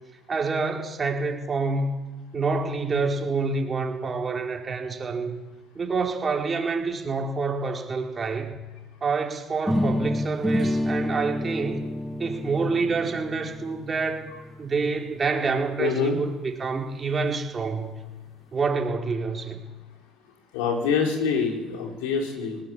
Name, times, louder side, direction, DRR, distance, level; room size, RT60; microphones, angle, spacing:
voice 1, 0.3-2.0 2.3-5.4 5.7-8.6 9.0-11.8 12.2-14.2 14.6-18.0 18.5-19.6, right 4 dB, 30° right, 1 dB, 4.7 m, -27 dB
sound 1, 9.7-15.6, left 1 dB, 5° left, 1.8 m, -29 dB
voice 2, 15.8-16.2 20.5-22.6, left 5 dB, 80° left, 1 dB, 4.9 m, -25 dB
19.5 x 19.0 x 9.1 m, 1.2 s
hypercardioid pair, 70°, 0 cm